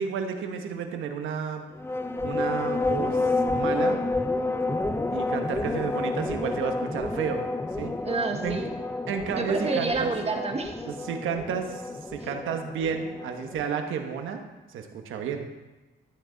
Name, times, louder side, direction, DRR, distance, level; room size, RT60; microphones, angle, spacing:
voice 1, 0.0-1.6 2.2-4.0 5.1-7.5 7.8-7.9 8.4-8.6 9.1-10.1 10.9-11.8 12.1-15.5, right 6 dB, 80° right, 5 dB, 1.3 m, -31 dB
sound 1, 1.8-13.7, left 2 dB, 10° left, 0.7 m, -30 dB
voice 2, 8.0-8.7 9.3-10.8, right 3 dB, 30° right, 4 dB, 1.7 m, -29 dB
13.0 x 8.7 x 4.0 m, 1.1 s
cardioid pair, 90°, 20 cm